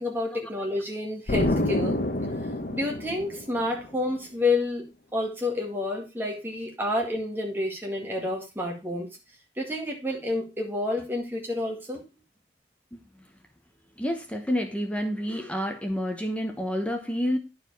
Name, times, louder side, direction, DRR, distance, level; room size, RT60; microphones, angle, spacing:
voice 1, 0.0-2.0 2.7-4.9 5.1-9.1 9.6-12.0, left 2 dB, 10° right, 1.9 m, -29 dB
Explosion, 1.3-3.9, left 1 dB, 50° left, 1.0 m, -28 dB
voice 2, 14.0-17.4, equal, 5° left, 1.0 m, -29 dB
9.8 x 4.8 x 4.6 m
head